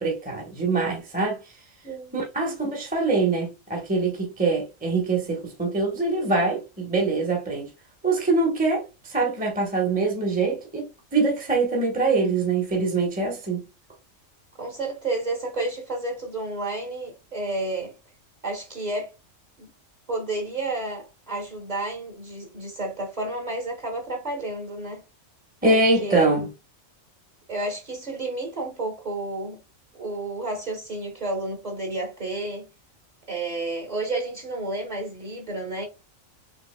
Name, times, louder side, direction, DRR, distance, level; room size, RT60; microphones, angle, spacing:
voice 1, 0.0-1.5 2.1-7.7 8.0-13.6 25.6-26.5, right 3 dB, 5° right, 1.1 m, -24 dB
voice 2, 1.8-2.2 14.6-17.9 18.4-19.1 19.6-19.7 20.1-25.0 25.6-26.4 27.5-29.6 29.9-32.6 33.3-35.9, right 2 dB, 30° right, 1.7 m, -31 dB
6.2 x 3.2 x 2.2 m
omnidirectional pair, 1.4 m